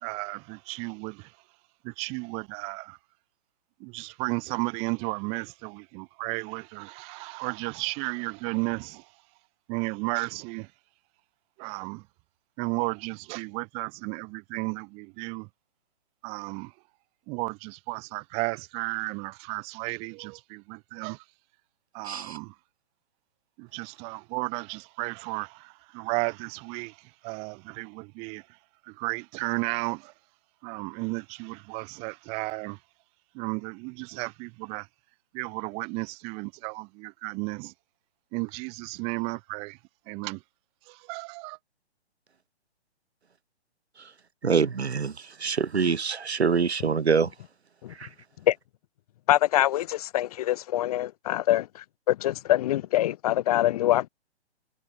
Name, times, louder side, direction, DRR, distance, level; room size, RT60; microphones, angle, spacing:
voice 1, 0.0-1.3 1.8-3.0 3.8-9.1 9.7-10.7 11.6-12.0 12.6-15.5 16.2-16.7 17.3-21.2 21.9-22.5 23.6-28.5 28.8-30.1 30.6-32.8 33.3-34.9 35.3-37.7 38.3-39.8 40.1-40.4 40.9-41.6, right 31 dB, 20° right, 0.9 m, -33 dB
voice 2, 22.1-22.4 44.4-45.1 45.4-47.3 48.0-48.1, right 5 dB, 75° right, 1.0 m, -25 dB
voice 3, 49.3-51.7 52.1-54.1, left 13 dB, 35° left, 1.5 m, -24 dB
figure-of-eight pair, 125°, 33 cm